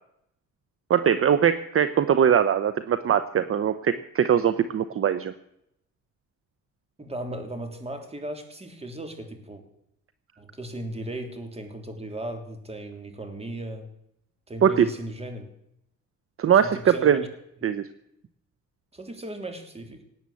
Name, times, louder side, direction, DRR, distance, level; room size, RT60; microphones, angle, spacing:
voice 1, 0.9-5.3 14.6-14.9 16.4-17.2 17.6-17.8, right 8 dB, 45° right, 13 dB, 0.9 m, -21 dB
voice 2, 7.0-9.6 10.4-13.9 14.5-15.4 16.6-17.3 18.9-20.0, right 1 dB, 20° right, 6 dB, 3.3 m, -36 dB
18.5 x 9.1 x 8.5 m, 0.79 s
cardioid pair, 90°, 30 cm